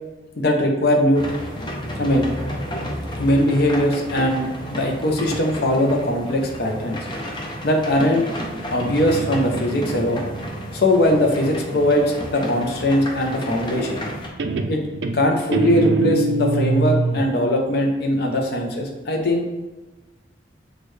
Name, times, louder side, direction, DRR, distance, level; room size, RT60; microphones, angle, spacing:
voice 1, 0.4-1.2 2.0-2.3 3.1-7.0 7.6-8.3 8.7-10.2 10.7-14.0 14.7-14.8 15.1-19.5, left 1 dB, 60° left, 1 dB, 0.7 m, -20 dB
sound 1, 1.2-14.3, equal, 25° left, 0.6 m, -32 dB
Guitar, 8.7-12.2 13.8-14.1 14.4-17.3, right 3 dB, 70° right, 0.4 m, -25 dB
6.3 x 2.5 x 3.2 m, 1.2 s
head